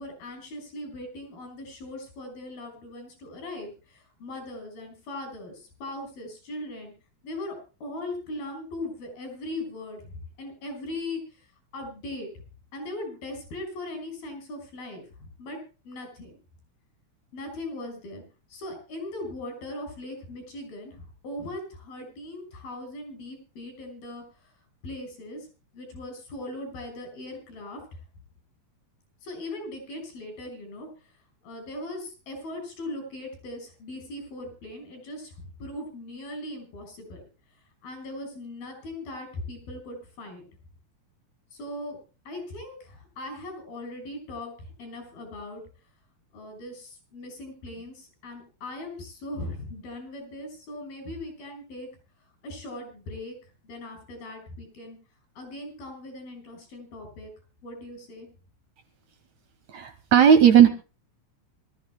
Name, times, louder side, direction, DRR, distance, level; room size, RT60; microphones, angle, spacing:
voice 1, 0.0-6.9 7.2-11.2 11.7-12.3 12.7-15.6 15.8-16.4 17.3-18.2 18.5-24.5 24.8-25.5 25.7-27.8 29.2-30.9 31.4-35.3 35.6-37.2 37.8-40.5 41.5-42.0 42.3-45.6 46.3-51.9 52.4-53.4 53.6-55.0 55.4-57.3 57.6-58.3, left 1 dB, 80° left, 5 dB, 8.1 m, -39 dB
voice 2, 59.7-60.7, right 8 dB, 60° right, 8 dB, 2.3 m, -15 dB
25.0 x 14.5 x 2.2 m, 0.34 s
omnidirectional pair, 4.2 m